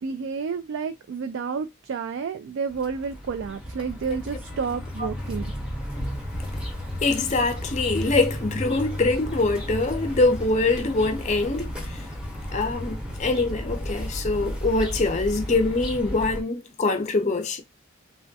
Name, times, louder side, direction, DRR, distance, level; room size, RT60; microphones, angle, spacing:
voice 1, 0.0-5.5, right 5 dB, 65° right, 0.3 m, -30 dB
sound 1, 2.7-16.4, equal, 5° right, 0.8 m, -33 dB
voice 2, 7.0-11.7 12.5-17.6, left 3 dB, 35° left, 0.5 m, -24 dB
3.4 x 2.1 x 2.7 m
head